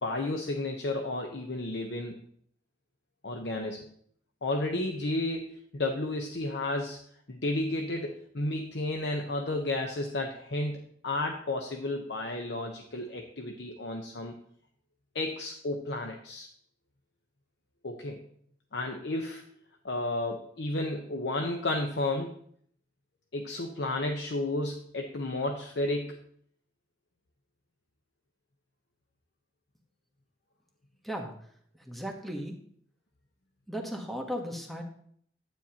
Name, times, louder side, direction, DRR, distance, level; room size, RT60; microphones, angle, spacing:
voice 1, 0.0-2.1 3.2-3.8 4.4-7.0 7.3-14.3 15.1-16.5 17.8-18.3 18.7-19.5 19.8-22.4 23.3-26.2, left 2 dB, 85° left, 3 dB, 0.9 m, -32 dB
voice 2, 31.8-32.6 33.7-34.8, equal, ahead, 1 dB, 1.1 m, -36 dB
12.0 x 9.0 x 2.9 m, 0.63 s
head